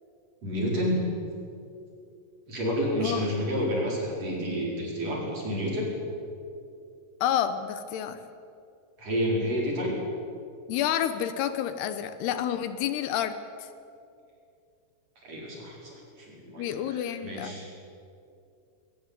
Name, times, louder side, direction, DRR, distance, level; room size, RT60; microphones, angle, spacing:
voice 1, 0.4-1.0 2.5-5.9 9.0-9.9 15.2-15.9 16.2-17.7, equal, 40° right, -2 dB, 5.8 m, -29 dB
voice 2, 7.2-8.2 10.7-13.7 16.5-17.6, left 10 dB, 80° left, 11 dB, 3.0 m, -29 dB
20.5 x 19.5 x 8.3 m, 2.5 s
omnidirectional pair, 4.7 m